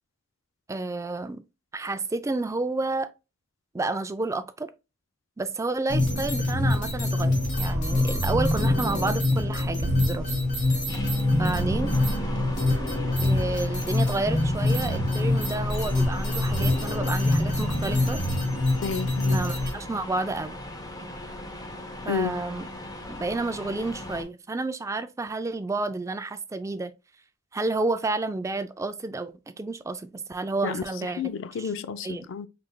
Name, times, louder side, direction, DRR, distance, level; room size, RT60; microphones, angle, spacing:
voice 1, 0.7-1.4 1.7-3.1 3.7-4.7 5.4-10.3 11.4-11.9 13.2-18.2 19.3-20.6 22.0-22.7 23.1-26.9 27.5-31.2 31.6-31.7 32.0-32.2, right 2 dB, 15° right, 0.3 m, -30 dB
sound 1, 5.9-19.7, left 1 dB, 40° left, 1.7 m, -25 dB
sound 2, 7.2-14.1, right 2 dB, 70° right, 1.0 m, -38 dB
sound 3, 9.6-24.2, equal, 20° left, 0.7 m, -39 dB
voice 2, 18.8-19.4 22.1-22.4 30.6-32.5, left 5 dB, 65° left, 0.4 m, -31 dB
5.0 x 3.2 x 2.2 m
head